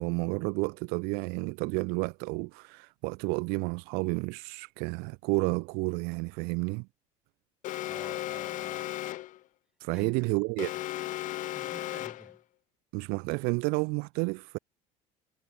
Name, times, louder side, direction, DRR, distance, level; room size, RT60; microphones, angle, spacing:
voice 1, 0.0-6.9 9.8-10.7 12.9-14.6, right 31 dB, 70° right, 0.7 m, -31 dB
Alarm, 7.6-9.4 10.6-12.4, left 15 dB, 50° left, 0.5 m, -35 dB
voice 2, 7.9-8.9 9.9-10.3 11.5-12.4, right 1 dB, 5° right, 4.1 m, -49 dB
hypercardioid pair, 70°, 17 cm